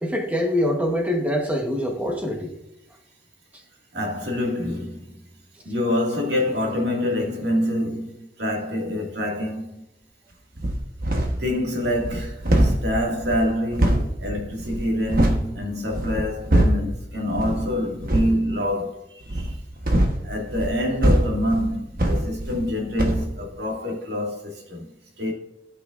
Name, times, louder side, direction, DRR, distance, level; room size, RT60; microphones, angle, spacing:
voice 1, 0.0-2.5, left 1 dB, 10° right, 1.2 m, -24 dB
voice 2, 3.9-5.2 5.6-9.8 11.4-19.6 20.2-24.9 25.2-25.3, left 1 dB, 70° right, 2.2 m, -26 dB
sound 1, 10.6-11.5 11.8-15.5 15.9-16.9 17.3-17.7 18.0-18.4 19.2-22.7 23.0-23.3, right 1 dB, 50° right, 1.2 m, -23 dB
16.5 x 5.8 x 2.6 m
head